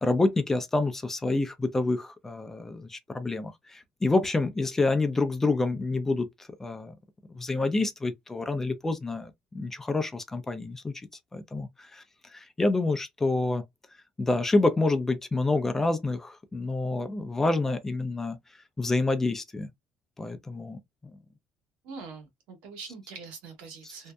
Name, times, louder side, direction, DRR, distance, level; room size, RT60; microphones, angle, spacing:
voice 1, 0.0-6.9 7.3-10.9 11.3-12.0 12.3-13.6 14.2-18.4 18.8-19.7 20.2-20.8 23.8-24.1, left 2 dB, 15° left, 0.5 m, -28 dB
voice 2, 21.8-24.1, right 4 dB, 85° right, 1.2 m, -43 dB
2.6 x 2.0 x 2.3 m
cardioid pair, 105°, 2 cm